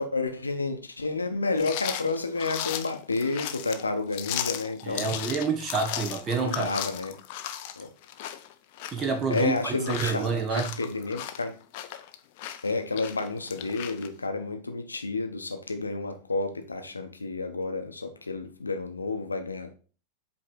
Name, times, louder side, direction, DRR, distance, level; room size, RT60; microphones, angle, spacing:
voice 1, 0.0-5.2 6.4-7.2 7.8-7.9 9.3-10.3 10.6-11.5 12.6-19.7, left 3 dB, 80° left, 0.8 m, -30 dB
sound 1, 1.5-14.1, left 11 dB, 50° left, 0.6 m, -36 dB
voice 2, 4.8-6.7 8.9-10.7, right 5 dB, 25° right, 1.1 m, -28 dB
7.8 x 3.2 x 4.4 m
figure-of-eight pair, 90°, 0 cm